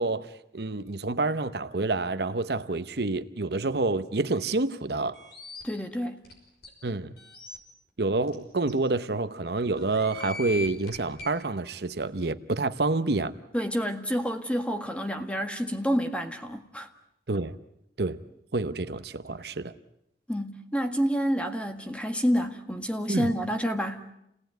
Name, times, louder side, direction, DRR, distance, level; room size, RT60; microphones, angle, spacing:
voice 1, 0.0-5.2 6.8-7.1 8.0-13.3 17.3-17.6 18.0-18.2 18.5-19.7 23.1-23.3, right 3 dB, 60° right, 0.9 m, -28 dB
sound 1, 5.1-5.6 6.2-6.3 6.6-6.7 7.2-7.6 8.3-8.4 8.7-8.8 9.8-11.3, left 3 dB, 60° left, 5.8 m, -40 dB
voice 2, 5.6-6.2 13.5-16.9 20.3-24.0, equal, 5° left, 1.6 m, -28 dB
28.5 x 18.5 x 9.3 m
head